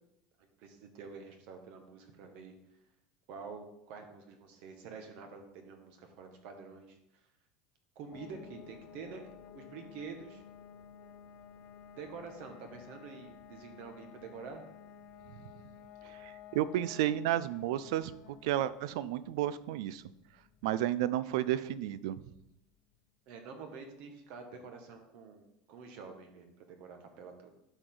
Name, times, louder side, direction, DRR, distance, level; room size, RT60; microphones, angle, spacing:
voice 1, 0.6-2.5 3.3-7.0 7.9-9.3 9.5-10.4 12.0-14.6 23.3-27.5, right 5 dB, 60° right, 4 dB, 1.6 m, -47 dB
sound 1, 8.1-22.7, left 8 dB, 55° left, 0.4 m, -54 dB
voice 2, 16.1-18.1 18.4-20.0 20.6-22.2, right 13 dB, 80° right, 16 dB, 0.4 m, -32 dB
11.5 x 4.9 x 3.9 m, 0.84 s
supercardioid pair, 135°, 3 cm